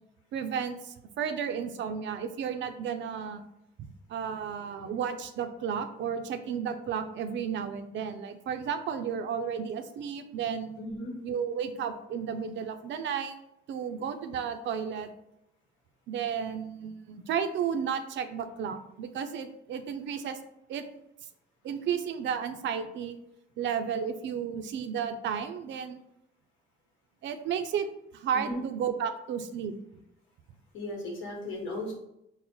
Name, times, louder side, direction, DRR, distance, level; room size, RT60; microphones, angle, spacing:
voice 1, 0.3-3.4 3.8-10.7 11.2-13.4 13.7-15.1 16.1-20.4 20.7-20.8 21.6-23.2 23.6-26.0 27.2-27.9 28.1-29.7, right 7 dB, 70° right, 9 dB, 0.5 m, -33 dB
voice 2, 10.8-11.1 28.3-28.6 30.7-31.9, left 1 dB, 85° left, -1 dB, 1.1 m, -36 dB
4.0 x 2.0 x 4.2 m, 0.83 s
cardioid pair, 90°, 20 cm